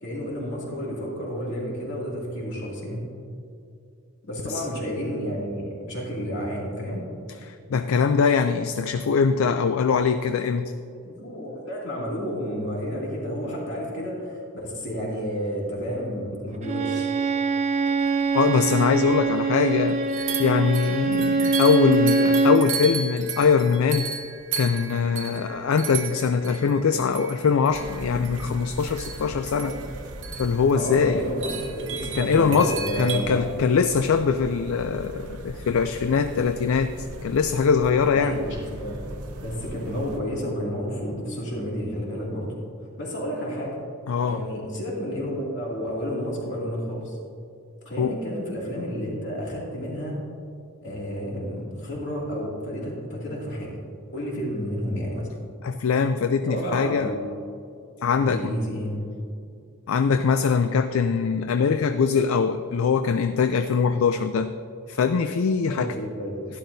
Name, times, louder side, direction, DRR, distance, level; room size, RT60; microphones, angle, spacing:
voice 1, 0.0-3.1 4.2-7.0 11.0-17.1 29.5-29.8 30.7-33.5 38.1-39.0 39.4-42.5 43.0-43.8 44.2-47.2 47.8-50.2 50.8-53.7 54.1-55.3 56.5-57.3 58.1-59.1 65.7-66.4, equal, 50° left, -4 dB, 2.5 m, -31 dB
voice 2, 7.5-10.7 18.3-20.0 20.4-24.1 24.6-29.7 30.4-31.2 32.1-36.9 37.2-38.4 44.1-44.4 48.0-48.1 55.6-57.1 58.0-58.5 59.9-64.5 64.9-65.9, left 5 dB, 70° left, 9 dB, 0.4 m, -22 dB
Bowed string instrument, 16.6-22.7, right 3 dB, 30° right, 0.5 m, -23 dB
sound 1, 18.4-18.5 18.7-18.8 20.1-33.2, right 6 dB, 55° right, 1.0 m, -35 dB
sound 2, 27.7-40.2, right 1 dB, 85° right, 0.8 m, -39 dB
12.0 x 11.5 x 2.7 m, 2.5 s
head